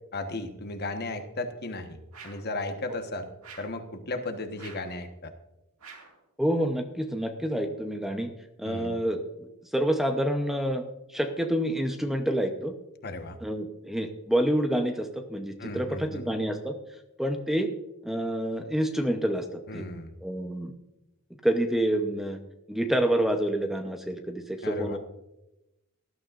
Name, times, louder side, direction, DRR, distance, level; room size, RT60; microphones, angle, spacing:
voice 1, 0.1-2.0 2.2-3.3 3.6-5.3 8.6-9.0 13.0-13.4 15.6-16.3 19.7-20.1 24.6-25.0, left 2 dB, 50° left, 6 dB, 1.3 m, -35 dB
sound 1, 2.1-2.5 3.4-3.8 4.6-5.0 5.8-6.2, right 5 dB, 80° right, 2.1 m, -47 dB
voice 2, 6.4-8.3 8.6-10.8 11.1-12.7 13.4-16.8 17.2-17.7 18.0-19.8 20.2-20.7 21.4-22.4 22.7-25.0, right 1 dB, ahead, 5 dB, 0.8 m, -28 dB
19.0 x 12.0 x 2.5 m, 0.95 s
head